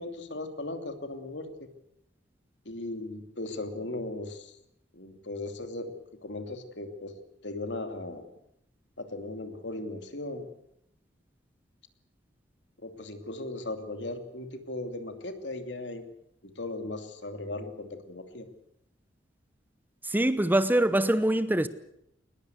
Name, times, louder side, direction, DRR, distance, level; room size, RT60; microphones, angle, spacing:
voice 1, 0.0-1.7 2.6-4.6 4.9-5.9 6.2-7.1 7.4-8.2 9.0-10.5 12.8-16.0 16.4-18.5, left 2 dB, 75° left, 2.8 m, -37 dB
voice 2, 20.0-21.7, right 1 dB, 10° right, 0.9 m, -24 dB
21.5 x 20.5 x 8.1 m
head